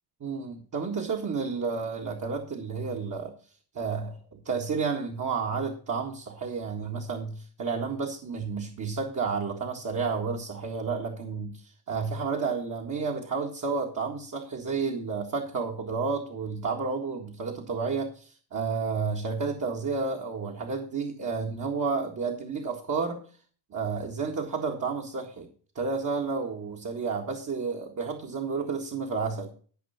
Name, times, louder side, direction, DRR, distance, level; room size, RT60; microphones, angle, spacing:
voice 1, 0.2-3.3 3.8-23.2 23.7-25.5 25.8-29.5, right 5 dB, 45° right, 1 dB, 1.8 m, -31 dB
13.0 x 5.5 x 5.7 m, 0.43 s
cardioid pair, 90°, 41 cm